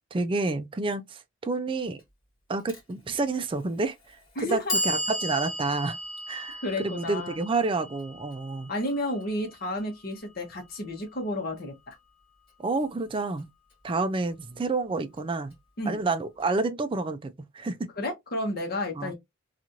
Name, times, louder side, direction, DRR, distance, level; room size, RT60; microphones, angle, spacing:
voice 1, 0.1-2.0 2.5-6.0 6.3-8.7 12.6-13.5 13.8-15.6 15.9-17.9 19.0-19.1, right 3 dB, 25° right, 0.4 m, -29 dB
Clock, 2.7-2.8 3.8-3.9 4.4-10.4, equal, 25° left, 1.4 m, -35 dB
voice 2, 4.4-4.8 6.6-7.4 8.7-12.0 15.8-16.0 18.0-19.1, left 1 dB, 50° left, 1.0 m, -31 dB
3.0 x 2.4 x 2.6 m
head